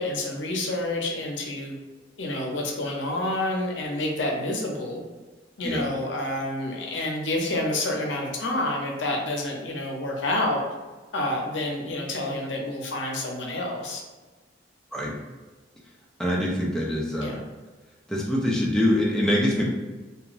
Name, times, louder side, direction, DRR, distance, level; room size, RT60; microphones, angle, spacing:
voice 1, 0.0-1.7 2.2-5.0 5.6-10.6 11.1-14.0 17.2-17.4, left 1 dB, 75° left, 0 dB, 0.6 m, -28 dB
voice 2, 16.2-17.4 18.1-19.6, left 1 dB, 5° left, -4 dB, 0.4 m, -24 dB
2.4 x 2.3 x 2.9 m, 1.3 s
head